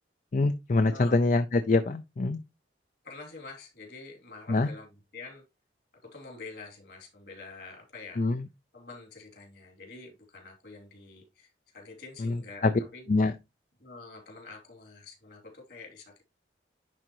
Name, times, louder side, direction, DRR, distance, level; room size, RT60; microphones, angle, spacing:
voice 1, 0.3-2.4 4.5-4.7 8.2-8.5 12.2-12.7 13.1-13.3, left 3 dB, 45° left, 0.4 m, -25 dB
voice 2, 0.9-1.3 3.0-5.4 6.0-8.2 8.7-13.1 13.8-16.2, left 3 dB, 60° left, 2.8 m, -47 dB
10.5 x 3.8 x 3.0 m
head